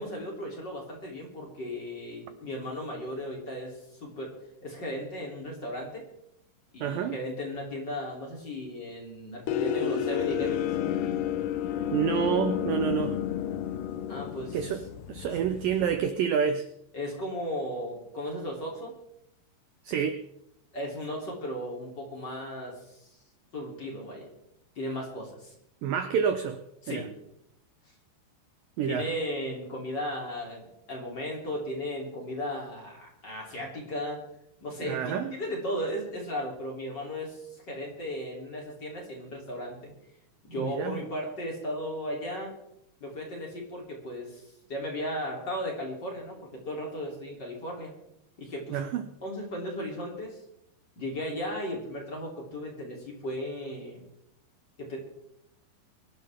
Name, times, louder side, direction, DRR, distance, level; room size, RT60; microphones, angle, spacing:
voice 1, 0.0-4.3 4.6-6.0 6.7-10.6 14.1-14.6 15.3-15.4 16.9-18.9 20.7-23.1 23.5-24.3 24.7-25.5 26.8-27.1 28.8-34.2 34.6-39.9 40.4-42.5 43.0-47.9 48.4-48.8 49.2-50.4 50.9-54.0 54.8-55.0, equal, 25° left, -2 dB, 3.4 m, -36 dB
voice 2, 6.8-7.2 11.9-13.2 14.5-14.8 15.1-16.7 19.8-20.2 25.8-26.6 26.9-27.0 28.8-29.1 34.8-35.3 40.6-41.0 48.7-49.1, right 8 dB, 75° right, 9 dB, 2.1 m, -28 dB
sound 1, 9.5-16.1, left 9 dB, 80° left, 1.8 m, -31 dB
24.0 x 12.0 x 3.6 m, 0.78 s
omnidirectional pair, 4.8 m